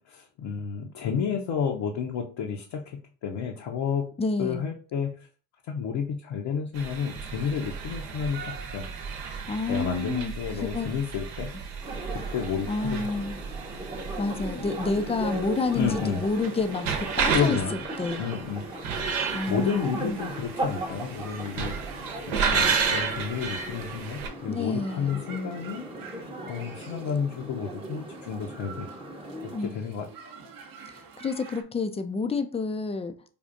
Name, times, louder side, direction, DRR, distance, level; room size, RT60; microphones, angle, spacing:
voice 1, 0.1-4.1 4.4-5.1 5.7-8.4 8.7-8.9 9.7-11.5 12.1-13.1 15.7-16.2 17.3-17.8 18.2-18.6 19.1-21.7 22.2-25.8 26.5-28.9 29.6-30.3, left 7 dB, 60° left, 0.7 m, -31 dB
voice 2, 4.2-4.6 9.5-10.3 10.6-10.9 12.7-13.4 14.2-18.2 19.3-20.2 24.5-25.2 29.5-29.7 30.9-33.2, left 3 dB, 15° left, 0.3 m, -29 dB
sound 1, 6.7-24.3, right 5 dB, 70° right, 0.9 m, -32 dB
sound 2, 11.8-29.6, right 1 dB, 10° right, 0.7 m, -38 dB
sound 3, 20.1-31.6, right 5 dB, 45° right, 0.8 m, -46 dB
5.1 x 2.4 x 2.5 m
supercardioid pair, 70°, 48 cm